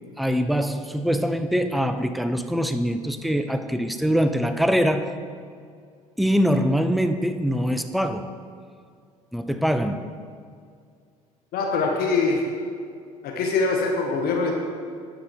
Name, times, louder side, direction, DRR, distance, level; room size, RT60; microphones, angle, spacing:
voice 1, 0.2-5.2 6.2-8.3 9.3-10.1, equal, ahead, 9 dB, 0.6 m, -23 dB
voice 2, 11.5-12.4 13.2-14.5, left 4 dB, 55° left, 1 dB, 1.2 m, -23 dB
11.5 x 5.2 x 4.7 m, 2.2 s
hypercardioid pair, 65°, 19 cm